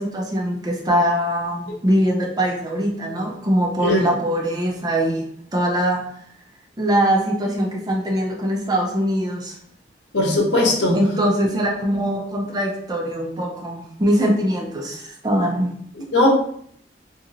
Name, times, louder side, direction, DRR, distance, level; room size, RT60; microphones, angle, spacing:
voice 1, 0.0-5.3 5.5-6.1 6.8-9.6 10.9-15.7, equal, 20° right, 0 dB, 0.4 m, -22 dB
voice 2, 10.1-11.0 16.1-16.3, left 2 dB, 90° left, -1 dB, 0.8 m, -18 dB
2.8 x 2.7 x 2.6 m, 0.66 s
head